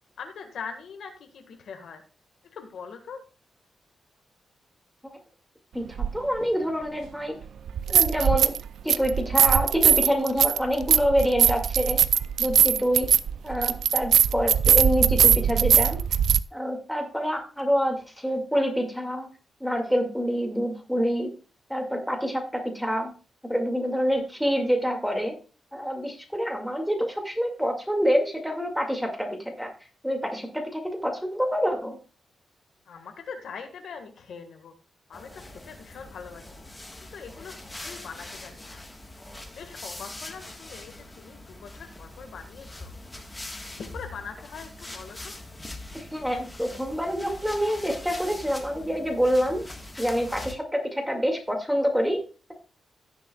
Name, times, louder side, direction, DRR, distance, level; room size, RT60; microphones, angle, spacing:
voice 1, 0.2-2.0 2.5-3.2 32.8-34.7 35.1-36.4 37.1-38.8 39.5-42.9 43.8-45.4, left 6 dB, 80° left, 5 dB, 1.6 m, -42 dB
sound 1, 6.0-6.1 7.7-8.6 8.9-16.4, right 8 dB, 80° right, 0.4 m, -20 dB
voice 2, 6.1-7.4 7.9-8.5 8.8-12.0 12.4-13.1 13.4-16.0 16.5-19.3 19.6-21.3 21.7-23.1 23.5-25.4 25.7-29.3 29.6-29.7 30.0-32.0 45.9-49.6 50.0-52.2, equal, ahead, 2 dB, 2.2 m, -26 dB
sound 2, 35.1-50.5, left 2 dB, 15° left, 1.4 m, -42 dB
16.5 x 7.0 x 2.3 m, 0.36 s
cardioid pair, 115°, 0 cm